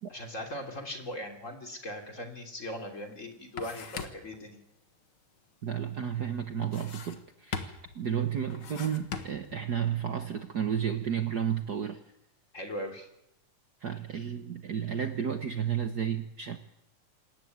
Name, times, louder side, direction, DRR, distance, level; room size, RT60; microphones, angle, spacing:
voice 1, 0.1-4.6 12.5-13.1, left 1 dB, 25° left, 4 dB, 3.2 m, -39 dB
sound 1, 2.7-2.8 3.1-4.4 6.6-7.3 7.5-8.0 8.5-9.6, left 6 dB, 45° left, 2.0 m, -40 dB
voice 2, 5.6-12.0 13.8-16.6, right 8 dB, 80° right, 7 dB, 0.8 m, -32 dB
27.5 x 14.0 x 9.4 m, 0.81 s
omnidirectional pair, 3.7 m